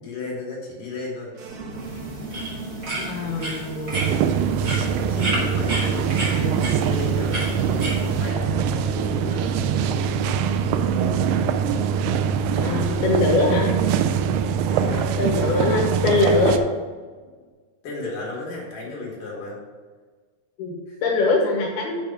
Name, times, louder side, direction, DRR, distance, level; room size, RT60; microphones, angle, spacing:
voice 1, 0.0-1.3 2.3-2.5 4.9-9.5 9.7-10.0 12.6-13.1 14.7-15.1 17.8-19.6 20.9-21.0, left 3 dB, 55° left, -3 dB, 3.1 m, -34 dB
sound 1, 1.3-17.4, right 2 dB, 65° right, 1.9 m, -38 dB
sound 2, 1.7-8.3, right 1 dB, 30° right, 2.2 m, -32 dB
voice 2, 3.0-4.3 12.6-13.7 15.2-16.6 20.6-22.0, left 3 dB, 75° left, -2 dB, 2.9 m, -22 dB
sound 3, 3.9-16.6, right 7 dB, 85° right, 2.4 m, -23 dB
7.1 x 6.1 x 6.0 m, 1.5 s
omnidirectional pair, 5.0 m